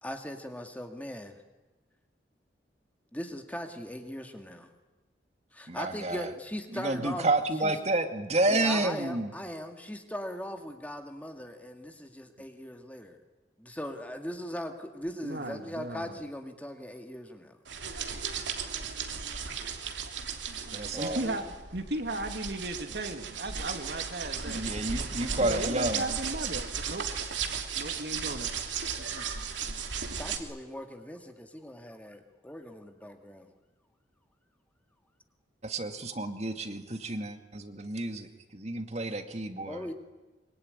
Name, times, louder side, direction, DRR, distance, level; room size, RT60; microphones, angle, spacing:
voice 1, 0.0-1.4 3.1-4.7 5.5-7.3 7.6-7.7 8.5-13.2 13.6-17.6 20.9-21.4 30.0-33.5 39.7-39.9, equal, 10° left, 5 dB, 2.2 m, -39 dB
voice 2, 5.7-6.3 6.7-9.3 20.7-21.2 24.5-26.0 35.6-39.9, right 2 dB, 35° right, 7 dB, 2.2 m, -30 dB
voice 3, 15.2-16.2 20.9-21.4 21.7-24.6 25.4-27.0 27.7-28.5 29.0-29.2, right 2 dB, 60° right, 6 dB, 2.6 m, -36 dB
sound 1, 17.7-30.4, right 6 dB, 80° right, 3.1 m, -35 dB
24.5 x 24.5 x 9.8 m, 1.2 s
head